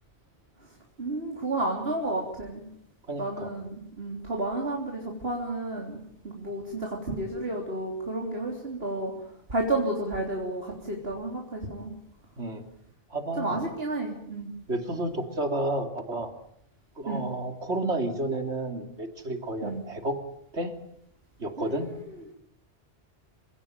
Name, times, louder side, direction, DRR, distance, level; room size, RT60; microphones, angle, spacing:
voice 1, 1.0-2.7 3.2-6.0 6.2-9.1 9.5-11.9 13.4-14.5 17.1-17.3 19.6-19.8 21.6-22.0, right 2 dB, 60° right, 0 dB, 3.8 m, -31 dB
voice 2, 3.1-3.5 12.4-12.6 13.1-13.6 14.7-16.3 17.0-20.2 20.5-20.7 21.4-21.9, right 1 dB, 75° right, 5 dB, 3.2 m, -31 dB
27.5 x 17.0 x 9.1 m, 0.72 s
omnidirectional pair, 1.2 m